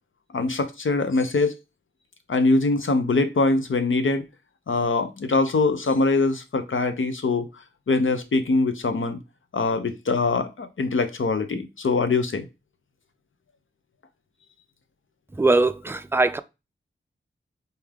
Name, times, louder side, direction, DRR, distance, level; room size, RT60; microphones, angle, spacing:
voice 1, 0.3-1.5 2.3-4.2 4.7-7.5 7.9-9.2 9.5-12.5, left 3 dB, 75° left, 0.8 m, -23 dB
voice 2, 15.4-16.4, right 3 dB, 10° right, 0.4 m, -21 dB
4.2 x 3.6 x 3.4 m
wide cardioid pair, 70°, 20 cm